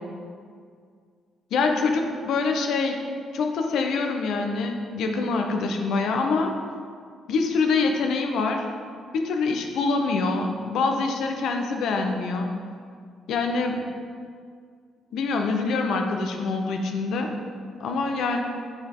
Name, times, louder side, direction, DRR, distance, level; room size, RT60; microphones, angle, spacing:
voice 1, 1.5-3.0 3.3-6.6 7.3-8.6 9.1-12.6 13.3-13.9 15.1-17.4 17.8-18.4, left 4 dB, 75° left, 4 dB, 0.9 m, -25 dB
7.7 x 7.7 x 3.7 m, 2.1 s
cardioid pair, 90°, 0 cm